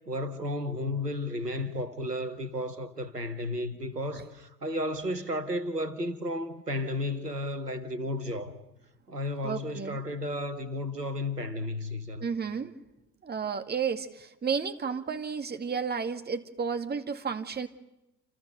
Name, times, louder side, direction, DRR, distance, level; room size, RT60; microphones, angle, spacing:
voice 1, 0.1-8.5 9.1-12.3, left 1 dB, 85° right, 1.8 m, -33 dB
voice 2, 9.4-10.0 12.2-12.7 13.2-17.7, right 6 dB, 20° right, 2.2 m, -32 dB
29.0 x 28.0 x 6.8 m
figure-of-eight pair, 70°, 46 cm